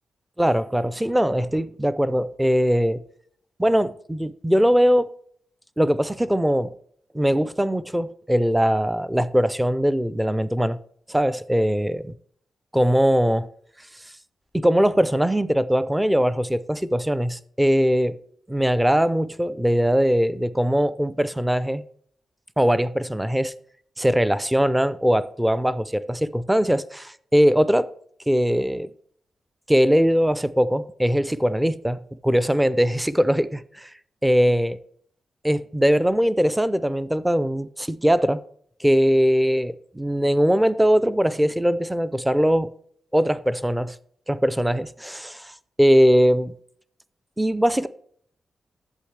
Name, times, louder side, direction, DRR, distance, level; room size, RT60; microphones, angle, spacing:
voice 1, 0.4-3.0 3.6-5.1 5.8-6.7 7.1-10.8 11.1-12.0 12.7-13.5 14.5-18.2 18.5-21.8 22.6-23.5 24.0-27.9 28.3-28.9 29.7-33.9 34.2-34.7 35.4-38.4 38.8-42.7 43.1-44.0 44.3-46.5 47.4-47.9, equal, 5° right, 0.4 m, -21 dB
11.5 x 7.9 x 3.2 m
wide cardioid pair, 140°, 0 cm